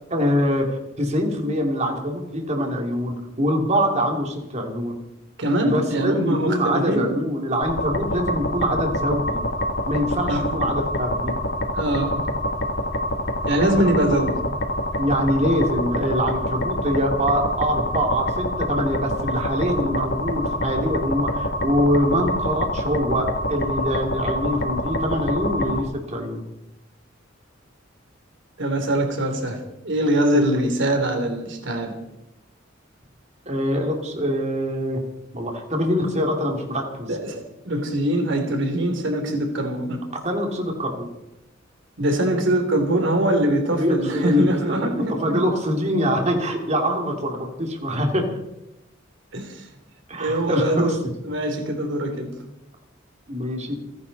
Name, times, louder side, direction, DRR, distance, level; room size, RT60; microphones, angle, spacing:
voice 1, 0.1-5.0 5.6-9.4 9.9-11.3 15.0-26.4 30.3-30.4 33.5-35.0 35.3-37.2 40.2-41.1 43.7-44.9 45.2-48.3 50.1-51.0 53.3-53.8, equal, 35° right, 2 dB, 2.9 m, -24 dB
voice 2, 5.4-7.1 10.3-10.4 11.7-12.2 13.5-14.4 28.6-32.0 37.1-40.1 42.0-45.4 49.3-49.7 50.2-51.0 51.3-52.3, right 1 dB, 65° right, 5 dB, 3.4 m, -23 dB
sound 1, 7.6-25.8, left 1 dB, 60° left, 2.0 m, -26 dB
29.5 x 10.5 x 4.2 m, 0.89 s
head